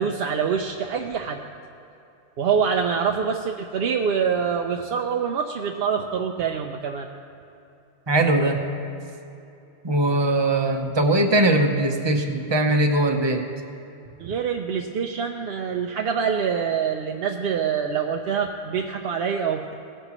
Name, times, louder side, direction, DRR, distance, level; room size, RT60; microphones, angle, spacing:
voice 1, 0.0-1.4 2.4-7.1 14.2-19.7, right 6 dB, 70° right, 3 dB, 0.8 m, -25 dB
voice 2, 8.1-8.6 9.8-13.4, right 1 dB, 25° right, 3 dB, 0.8 m, -20 dB
18.0 x 9.9 x 3.0 m, 2.8 s
omnidirectional pair, 1.1 m